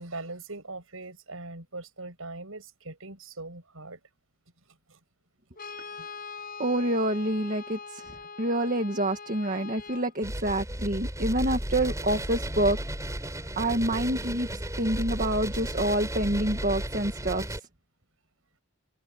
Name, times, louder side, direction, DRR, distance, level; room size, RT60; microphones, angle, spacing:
voice 1, 0.0-4.0 4.9-5.0, right 2 dB, 65° right, 7.7 m, -41 dB
Brass instrument, 5.6-10.1, left 5 dB, 40° left, 7.2 m, -42 dB
voice 2, 6.6-8.0 8.4-12.8 13.6-14.5 14.8-17.6, right 1 dB, 35° right, 1.8 m, -27 dB
sound 1, 10.2-17.6, right 1 dB, 15° right, 4.9 m, -34 dB
head